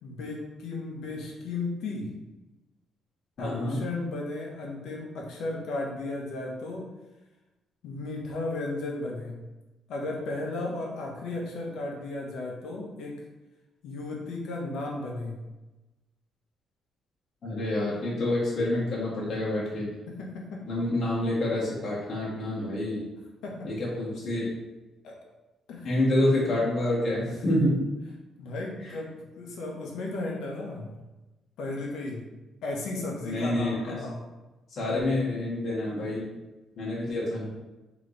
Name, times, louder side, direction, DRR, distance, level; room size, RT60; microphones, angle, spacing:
voice 1, 0.0-2.1 3.4-6.8 7.8-9.4 9.9-13.1 13.8-15.4 20.5-20.6 23.4-23.5 25.0-25.1 25.7-26.0 28.4-30.9 31.6-32.2 32.6-34.2, left 2 dB, 80° left, -1 dB, 0.9 m, -34 dB
voice 2, 3.4-3.8 17.4-19.9 20.7-23.0 23.6-24.5 25.8-27.8 33.2-34.0 34.7-36.3 36.8-37.5, left 1 dB, 55° left, -6 dB, 1.4 m, -27 dB
3.3 x 3.0 x 3.9 m, 1.1 s
cardioid pair, 90°, 0 cm